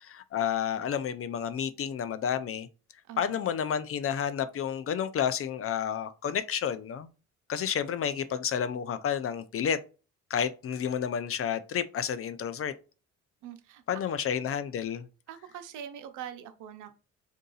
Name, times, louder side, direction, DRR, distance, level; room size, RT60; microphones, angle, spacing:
voice 1, 0.0-2.7 3.2-7.1 7.5-9.8 10.3-12.7 13.9-15.1, left 8 dB, 50° left, 0.5 m, -30 dB
voice 2, 3.1-3.6 13.4-13.8 15.3-17.0, right 9 dB, 90° right, 0.7 m, -43 dB
3.7 x 2.7 x 3.9 m
cardioid pair, 90°, 30 cm